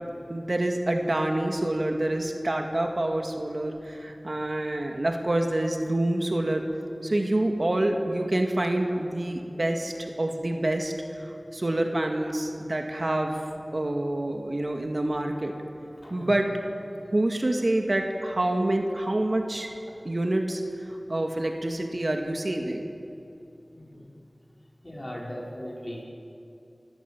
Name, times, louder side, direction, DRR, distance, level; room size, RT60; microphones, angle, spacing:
voice 1, 0.3-6.6 7.0-13.4 13.7-15.5 16.1-16.5 17.1-19.7 20.0-20.6 21.1-22.9, right 1 dB, 60° right, 3 dB, 2.1 m, -27 dB
voice 2, 16.0-16.3 23.7-24.1 24.8-26.0, equal, 35° left, -3 dB, 5.2 m, -38 dB
28.0 x 16.5 x 7.4 m, 2.7 s
wide cardioid pair, 45°, 0 cm